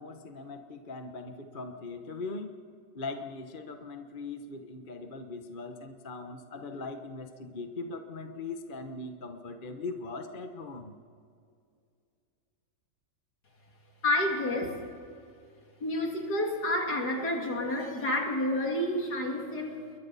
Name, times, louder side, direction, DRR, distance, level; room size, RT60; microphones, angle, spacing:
voice 1, 0.0-2.6 2.9-10.9, left 3 dB, 35° left, 5 dB, 1.0 m, -40 dB
voice 2, 14.0-14.8 15.8-19.8, left 1 dB, 55° left, 1 dB, 3.1 m, -29 dB
29.5 x 22.5 x 4.1 m, 2.4 s
omnidirectional pair, 2.1 m